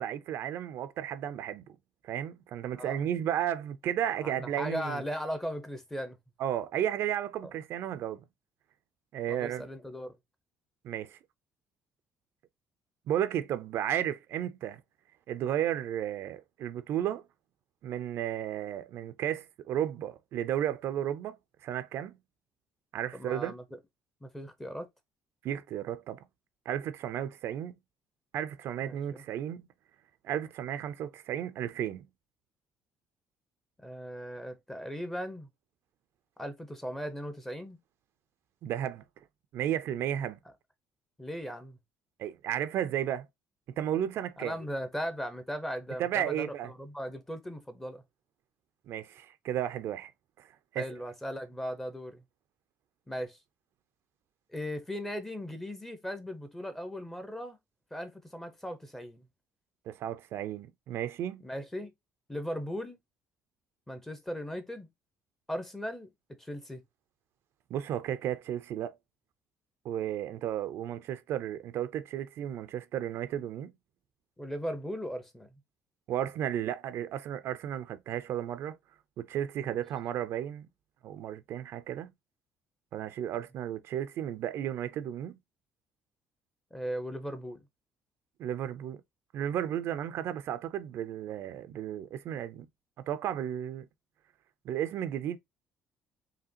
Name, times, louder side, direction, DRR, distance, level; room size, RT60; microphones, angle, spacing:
voice 1, 0.0-1.6 2.0-5.0 6.4-8.2 9.1-9.7 10.8-11.2 13.1-14.8 15.3-17.2 17.8-21.4 21.6-22.2 22.9-23.5 25.4-26.2 26.7-27.7 28.3-29.7 30.2-32.1 38.6-39.0 39.5-40.4 42.2-43.3 43.8-44.5 46.0-46.7 48.9-50.1 50.7-50.9 59.9-61.4 67.7-69.0 69.8-73.7 76.1-78.8 79.2-80.7 81.0-82.1 82.9-85.4 88.4-89.0 89.3-92.7 93.1-93.8 94.6-95.4, right 10 dB, 60° right, 0.5 m, -33 dB
voice 2, 4.2-6.2 9.3-10.2 23.1-23.6 24.2-24.9 28.9-29.2 33.8-35.5 36.4-37.8 41.2-41.8 44.4-48.0 50.8-52.2 53.1-53.4 54.5-57.6 57.9-59.3 61.4-61.9 62.3-63.0 63.9-64.9 65.5-66.1 66.4-66.8 74.4-75.5 79.6-79.8 86.7-87.6, equal, 10° left, 0.8 m, -38 dB
4.9 x 2.9 x 2.8 m
cardioid pair, 145°, 5 cm